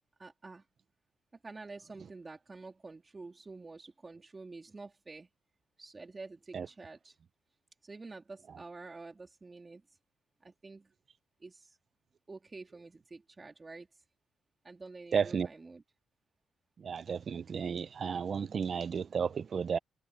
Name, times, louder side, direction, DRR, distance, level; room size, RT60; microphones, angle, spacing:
voice 1, 0.2-0.6 1.4-5.3 5.8-7.2 7.8-10.0 10.4-10.9 11.4-11.8 12.3-14.0 14.6-15.8, right 3 dB, 25° right, 3.3 m, -48 dB
voice 2, 15.1-15.5 16.8-19.8, right 6 dB, 45° right, 0.6 m, -33 dB
cardioid pair, 90°, 0 cm